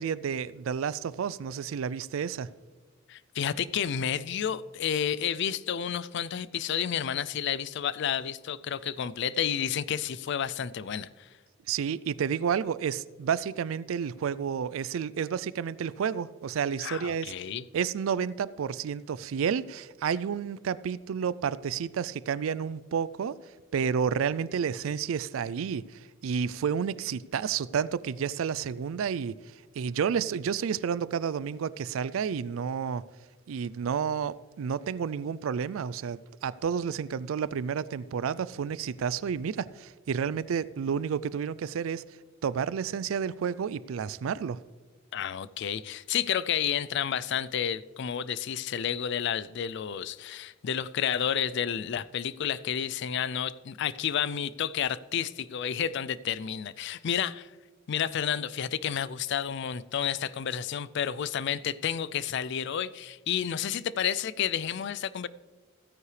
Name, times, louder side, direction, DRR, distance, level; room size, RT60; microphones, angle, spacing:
voice 1, 0.0-2.5 11.7-17.3 17.7-23.4 23.7-29.3 29.8-33.0 33.5-42.0 42.4-44.6, right 7 dB, 85° right, 19 dB, 0.4 m, -30 dB
voice 2, 3.1-11.3 16.8-17.6 45.1-57.5 57.9-65.3, left 8 dB, 60° left, 18 dB, 0.4 m, -31 dB
15.5 x 9.5 x 3.3 m, 1.3 s
head